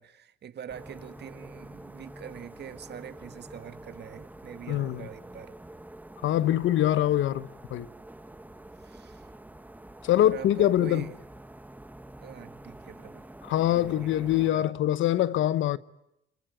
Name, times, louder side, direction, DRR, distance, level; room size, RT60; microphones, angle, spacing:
voice 1, 0.0-5.6 8.8-9.3 10.2-11.2 12.2-13.2 13.7-14.7, right 8 dB, 60° right, 1.7 m, -44 dB
sound 1, 0.7-14.5, right 1 dB, 10° right, 1.3 m, -47 dB
voice 2, 4.7-5.0 6.2-7.9 10.0-11.0 13.4-15.8, left 12 dB, 75° left, 0.9 m, -24 dB
28.5 x 20.5 x 9.2 m
cardioid pair, 90°, 20 cm